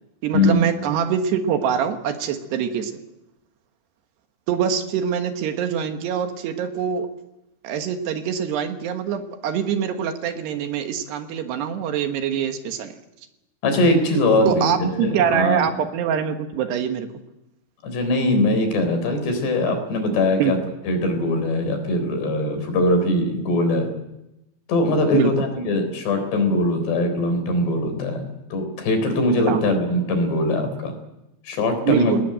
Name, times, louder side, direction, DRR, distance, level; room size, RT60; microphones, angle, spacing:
voice 1, 0.2-3.0 4.5-7.1 7.6-13.0 14.5-17.1 20.4-20.5 25.1-25.3 29.5-29.7 31.9-32.2, right 8 dB, 75° right, 7 dB, 3.4 m, -24 dB
voice 2, 13.6-15.7 17.8-20.6 20.9-23.9 24.7-28.2 28.5-30.9 31.5-32.1, left 1 dB, 70° left, 6 dB, 5.9 m, -21 dB
20.0 x 19.5 x 9.0 m, 0.93 s
omnidirectional pair, 5.1 m